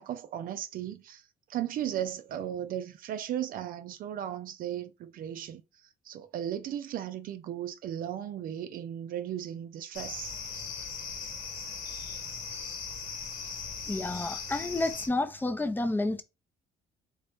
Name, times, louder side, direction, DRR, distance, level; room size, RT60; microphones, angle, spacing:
voice 1, 0.0-10.4, right 10 dB, 55° right, 0.4 m, -36 dB
sound 1, 9.9-15.1, left 5 dB, 65° left, 1.4 m, -39 dB
voice 2, 13.9-16.2, left 2 dB, 10° left, 0.5 m, -30 dB
3.9 x 2.7 x 3.5 m
cardioid pair, 110°, 17 cm